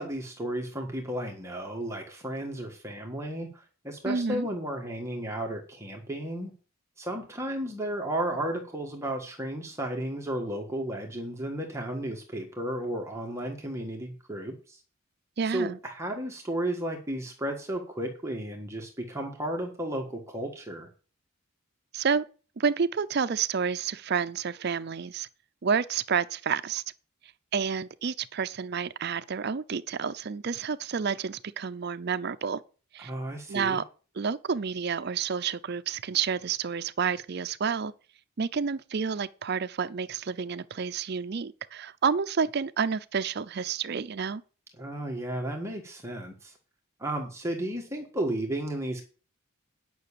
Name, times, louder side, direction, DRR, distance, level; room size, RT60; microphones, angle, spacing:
voice 1, 0.0-6.5 7.0-14.8 15.4-20.9 33.0-33.8 44.8-46.5 47.0-49.0, right 1 dB, 15° right, 1.5 m, -33 dB
voice 2, 4.0-4.5 15.4-15.8 21.9-22.2 22.6-25.3 25.6-26.8 27.5-32.6 32.9-33.1 33.5-33.8 34.2-37.9 38.4-44.4, right 6 dB, 50° right, 0.5 m, -29 dB
9.4 x 5.9 x 8.4 m
head